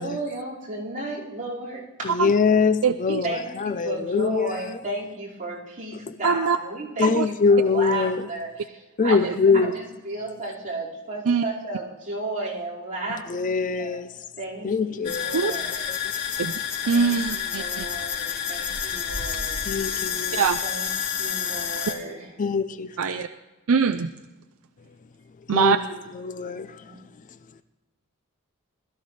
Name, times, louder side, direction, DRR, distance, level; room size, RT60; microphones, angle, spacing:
voice 1, 0.0-2.2 3.2-13.3 13.7-14.0 14.4-15.8 16.8-19.6 20.6-20.9 21.2-22.3 25.6-25.8 26.4-27.0, right 2 dB, 35° right, 4.8 m, -34 dB
voice 2, 2.0-4.8 7.0-8.3 9.0-9.7 13.3-14.1 14.6-15.6 15.9-16.0 19.7-20.4 22.4-23.3 25.5-25.8 26.2-26.8, left 5 dB, 35° left, 0.4 m, -23 dB
voice 3, 2.8-3.2 6.2-6.6 7.0-7.3 9.2-9.3 11.3-11.4 15.3-15.5 16.4-16.5 16.9-17.8 20.3-20.6 23.0-23.3 23.7-24.1 25.5-25.8, right 6 dB, 65° right, 0.5 m, -22 dB
sound 1, 15.0-21.9, left 8 dB, 90° left, 3.1 m, -29 dB
21.0 x 13.5 x 3.2 m
head